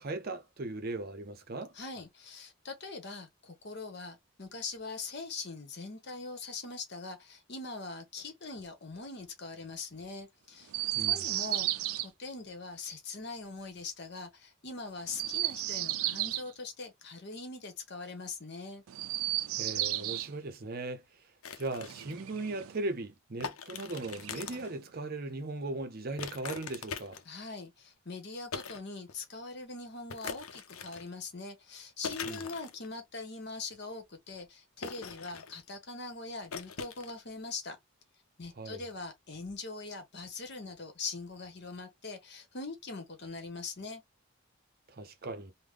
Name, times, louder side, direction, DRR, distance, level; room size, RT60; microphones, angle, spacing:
voice 1, 0.0-1.7 10.9-11.3 19.6-21.2 21.6-27.2 32.2-32.4 38.6-38.8 44.9-45.5, right 2 dB, 45° right, 0.6 m, -38 dB
voice 2, 1.7-10.7 11.1-18.8 27.2-37.8 38.4-44.0, left 3 dB, 50° left, 1.1 m, -42 dB
Chirp tweet, 10.7-12.1 15.1-16.5 18.9-20.3 21.7-22.8 23.9-24.8, right 15 dB, 85° right, 0.4 m, -34 dB
sound 1, 21.4-22.2 23.4-24.7 26.2-27.4 28.5-28.8 29.1-29.2 30.1-31.1 32.0-32.9 34.8-35.7 36.5-37.1, left 6 dB, 80° left, 0.6 m, -42 dB
3.6 x 2.1 x 3.2 m
head